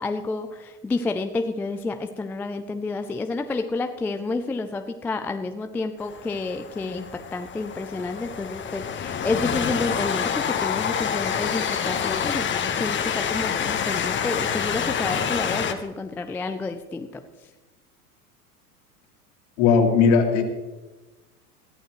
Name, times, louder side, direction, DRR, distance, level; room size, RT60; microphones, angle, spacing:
voice 1, 0.0-17.2, left 3 dB, 5° left, 8 dB, 0.3 m, -30 dB
Train, 6.0-15.7, left 7 dB, 25° left, 1.2 m, -27 dB
voice 2, 19.6-20.4, left 5 dB, 55° left, 3 dB, 2.7 m, -17 dB
21.0 x 14.0 x 3.1 m, 1.2 s
figure-of-eight pair, 85°, 46 cm